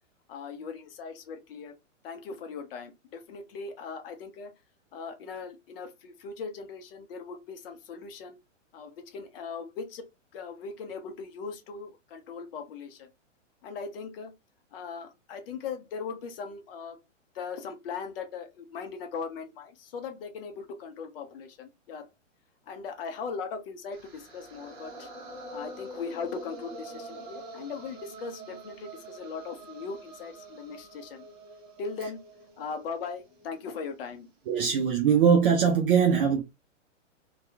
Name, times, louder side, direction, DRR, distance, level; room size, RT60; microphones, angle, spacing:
voice 1, 0.3-1.7 2.0-4.5 4.9-8.4 8.7-10.0 10.3-13.1 13.6-14.3 14.7-17.0 17.3-22.1 22.7-25.1 25.5-31.2 31.8-32.2 32.6-34.3, left 5 dB, 50° left, 0.7 m, -39 dB
sound 1, 23.9-34.0, right 1 dB, 25° right, 0.9 m, -45 dB
voice 2, 34.5-36.4, right 7 dB, 45° right, 0.5 m, -22 dB
2.8 x 2.3 x 2.2 m
hypercardioid pair, 120°, 38 cm